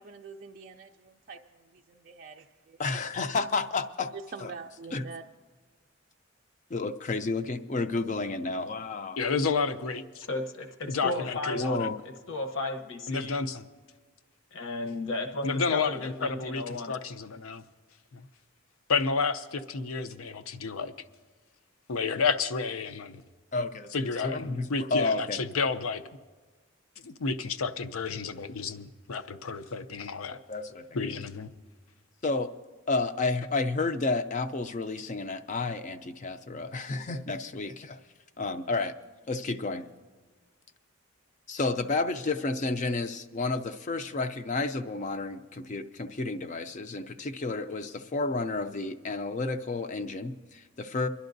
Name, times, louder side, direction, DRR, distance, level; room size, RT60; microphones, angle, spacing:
voice 1, 0.0-2.8 4.1-5.2, right 4 dB, 40° right, 0.4 m, -45 dB
voice 2, 2.8-4.1 4.4-4.5 4.9-5.0 6.7-9.2 11.2-12.0 23.5-23.9 24.2-25.4 30.5-30.9 32.2-32.5 32.9-38.0 38.4-38.9 39.3-39.9 41.5-51.1, left 3 dB, 35° left, 0.4 m, -31 dB
voice 3, 9.2-10.2 10.9-11.9 13.1-13.6 15.4-17.6 18.1-18.2 18.9-20.9 21.9-23.2 23.9-26.0 27.0-30.4 30.9-31.5, left 4 dB, 85° left, 0.6 m, -31 dB
voice 4, 10.2-11.6 12.3-13.4 14.5-16.9, left 2 dB, 70° left, 1.0 m, -34 dB
29.5 x 11.5 x 2.6 m
head